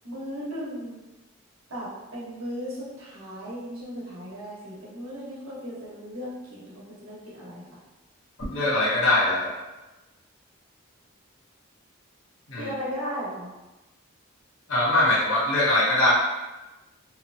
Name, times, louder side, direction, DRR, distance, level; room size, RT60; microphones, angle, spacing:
voice 1, 0.0-1.0 1.7-7.7 12.6-13.5, equal, 80° right, -6 dB, 0.9 m, -36 dB
voice 2, 8.5-9.6 12.5-12.7 14.7-16.1, left 2 dB, 70° left, -6 dB, 0.8 m, -22 dB
2.8 x 2.1 x 2.6 m, 1.1 s
head